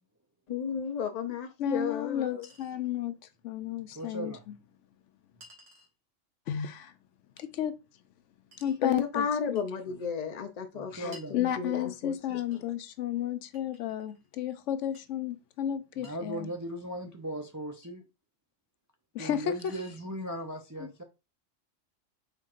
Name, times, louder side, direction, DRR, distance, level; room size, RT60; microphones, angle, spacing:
voice 1, 0.5-2.4 8.8-12.6, left 7 dB, 60° left, 0.4 m, -33 dB
Chink clink, 1.4-1.5 2.4-2.8 4.0-4.1 5.4-5.9 7.4-7.5 8.5-8.8 9.5-9.7 11.1-11.3 12.5-12.6 13.5-14.3 14.9-15.0 16.0-16.1 17.8-17.9 19.2-19.3 19.6-20.1, right 1 dB, 70° right, 1.7 m, -55 dB
voice 2, 1.6-3.1 3.4-4.3 6.5-6.9 7.4-7.7 8.6-9.6 10.9-16.5 19.1-19.5 20.8-20.9, left 10 dB, 75° left, 0.9 m, -33 dB
voice 3, 3.9-4.4 8.6-8.7 10.7-11.4 16.0-18.0 19.2-21.0, right 1 dB, 30° right, 0.3 m, -38 dB
4.5 x 4.3 x 2.4 m
omnidirectional pair, 1.3 m